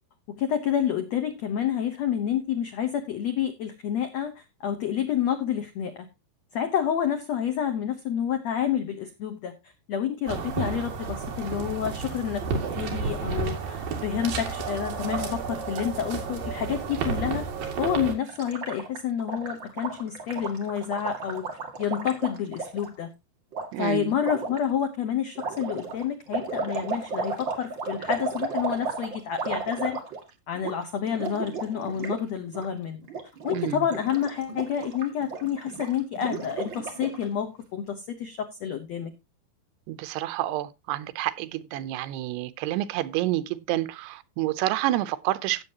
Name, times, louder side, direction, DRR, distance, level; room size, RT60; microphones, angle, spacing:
voice 1, 0.3-6.1 6.5-17.5 17.8-21.4 21.8-23.1 23.8-30.0 30.5-33.0 33.4-39.1, left 9 dB, 85° left, 1.5 m, -29 dB
sound 1, 10.3-18.1, right 5 dB, 60° right, 3.8 m, -31 dB
Gurgling, 18.3-22.9 23.5-23.7 24.2-24.6 25.4-30.3 30.6-30.8 31.0-32.2 32.5-32.7 33.0-33.6 33.8-37.3, right 4 dB, 35° right, 2.3 m, -34 dB
voice 2, 23.7-24.1 33.5-33.9 39.9-45.6, right 15 dB, 85° right, 2.8 m, -29 dB
16.5 x 7.3 x 2.8 m
omnidirectional pair, 4.7 m